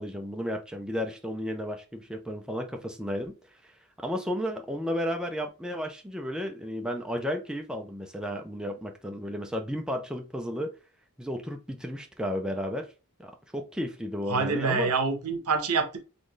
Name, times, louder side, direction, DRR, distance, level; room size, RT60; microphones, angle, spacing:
voice 1, 0.0-3.3 3.6-3.7 4.0-10.7 11.2-12.9 13.2-14.9, equal, 5° right, 0.6 m, -33 dB
voice 2, 14.3-16.0, right 4 dB, 90° right, 0.9 m, -26 dB
4.3 x 3.7 x 3.2 m
head